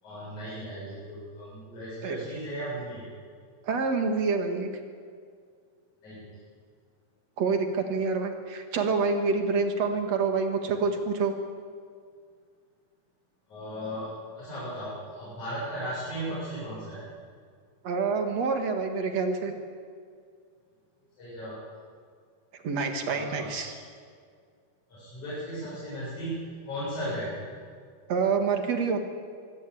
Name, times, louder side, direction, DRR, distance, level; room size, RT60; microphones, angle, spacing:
voice 1, 0.0-3.1 6.0-6.3 13.5-14.1 14.4-17.0 21.0-21.6 23.1-23.8 24.9-27.4, equal, 50° left, -10 dB, 9.2 m, -36 dB
voice 2, 3.7-4.7 7.4-11.3 17.8-19.5 22.6-23.7 28.1-29.0, right 4 dB, 50° right, 5 dB, 2.7 m, -27 dB
23.5 x 17.0 x 8.6 m, 2.1 s
omnidirectional pair, 4.2 m